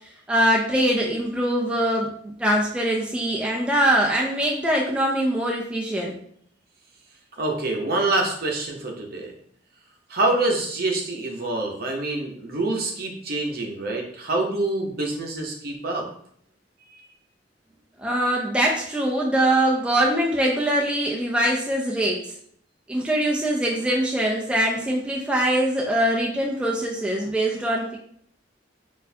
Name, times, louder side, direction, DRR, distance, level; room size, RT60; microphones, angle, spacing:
voice 1, 0.3-6.2 18.0-22.2 22.9-28.0, right 1 dB, 5° right, -3 dB, 0.4 m, -23 dB
voice 2, 7.4-9.3 10.1-16.1 17.0-17.1, right 2 dB, 55° right, 1 dB, 0.7 m, -26 dB
4.0 x 2.5 x 2.7 m, 0.64 s
head